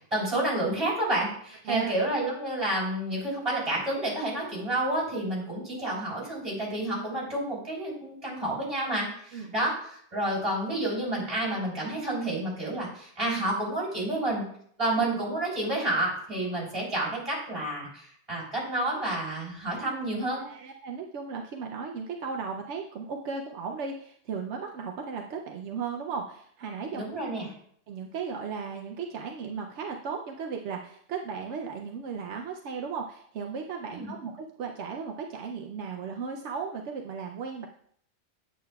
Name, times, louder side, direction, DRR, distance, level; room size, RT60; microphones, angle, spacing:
voice 1, 0.1-14.5 14.8-20.4 26.9-27.5 33.9-34.1, right 1 dB, 30° right, -6 dB, 3.6 m, -30 dB
voice 2, 20.4-27.0 27.9-37.7, right 5 dB, 80° right, 2 dB, 0.9 m, -36 dB
8.5 x 7.3 x 2.3 m, 0.63 s
omnidirectional pair, 1.2 m